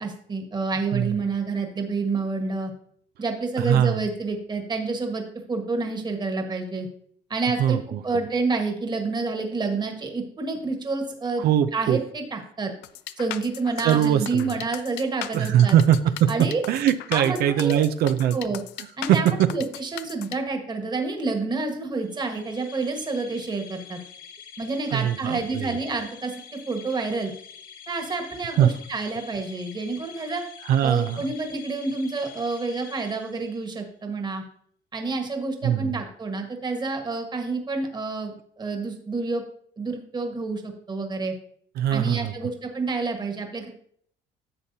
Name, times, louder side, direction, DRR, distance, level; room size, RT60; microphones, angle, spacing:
voice 1, 0.0-2.7 3.2-5.2 5.5-6.9 7.3-7.8 8.0-11.4 11.7-12.7 13.2-15.8 16.3-16.6 17.1-17.9 18.3-18.6 19.0-24.0 24.6-26.3 26.7-27.3 27.9-30.4 30.8-34.4 34.9-39.4 39.8-41.3 41.9-43.7, right 3 dB, 25° right, 3 dB, 1.5 m, -28 dB
voice 2, 3.6-4.0 7.6-8.0 11.4-12.0 13.8-14.5 15.3-16.3 16.7-18.4 19.1-19.5 24.9-25.7 28.6-28.7 30.7-31.2 35.6-35.9 41.8-42.3, right 10 dB, 70° right, 10 dB, 0.5 m, -21 dB
sound 1, 12.8-20.4, left 13 dB, 85° left, 0.5 m, -37 dB
sound 2, 22.0-33.8, left 7 dB, 60° left, 1.4 m, -46 dB
11.0 x 7.3 x 2.8 m, 0.63 s
cardioid pair, 110°, 17 cm